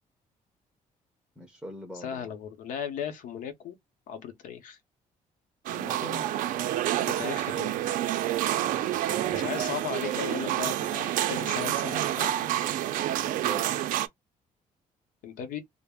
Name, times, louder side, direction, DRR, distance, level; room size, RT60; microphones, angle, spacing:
voice 1, 1.4-2.3 5.7-6.3 8.6-9.5 13.2-13.8, equal, ahead, 0.5 m, -43 dB
voice 2, 1.9-3.8 4.1-4.8 7.1-7.8 9.3-12.7 15.2-15.6, left 8 dB, 75° left, 0.7 m, -36 dB
sound 1, 5.7-14.1, right 13 dB, 75° right, 0.4 m, -28 dB
2.4 x 2.0 x 3.4 m
cardioid pair, 165°, 14 cm